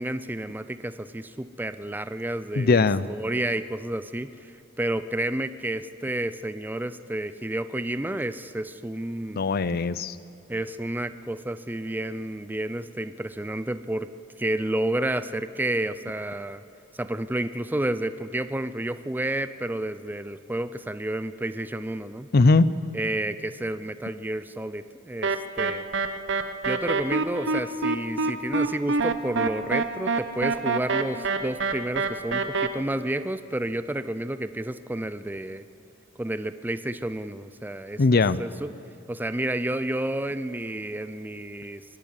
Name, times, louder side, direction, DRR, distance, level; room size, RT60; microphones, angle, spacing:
voice 1, 0.0-9.5 10.5-14.1 14.4-16.6 16.9-22.3 22.9-25.9 26.6-35.7 36.2-38.7 39.1-41.8, right 1 dB, 10° right, 13 dB, 0.5 m, -30 dB
voice 2, 2.6-3.0 9.3-10.2 22.3-22.7 38.0-38.4, left 3 dB, 50° left, 16 dB, 0.5 m, -20 dB
sound 1, 25.2-32.7, right 4 dB, 65° right, 1.0 m, -26 dB
23.0 x 12.0 x 9.7 m, 2.3 s
head